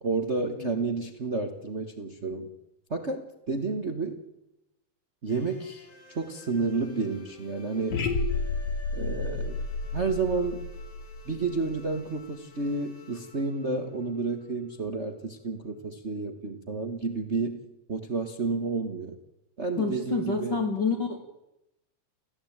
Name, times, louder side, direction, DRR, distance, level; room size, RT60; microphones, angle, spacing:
voice 1, 0.0-2.5 2.9-4.2 5.2-8.0 8.9-9.6 9.9-10.6 11.2-17.6 17.9-19.2 19.6-20.6, right 3 dB, 65° right, 6 dB, 0.6 m, -30 dB
sound 1, 5.3-15.2, left 3 dB, 80° left, 6.6 m, -52 dB
sound 2, 7.9-12.0, left 3 dB, 65° left, 3.9 m, -31 dB
voice 2, 19.8-21.3, left 5 dB, 35° left, 1 dB, 2.8 m, -29 dB
28.5 x 15.5 x 8.9 m, 0.92 s
omnidirectional pair, 3.8 m